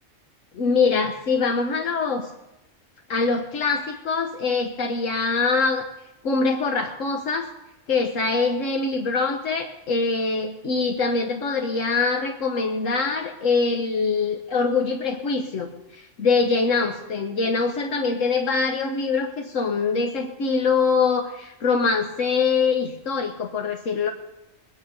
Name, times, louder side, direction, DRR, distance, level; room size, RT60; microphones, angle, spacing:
voice 1, 0.5-2.3 3.1-5.8 6.2-7.5 7.9-24.1, left 4 dB, 80° left, 3 dB, 1.4 m, -23 dB
20.5 x 9.6 x 5.4 m, 0.96 s
omnidirectional pair, 1.3 m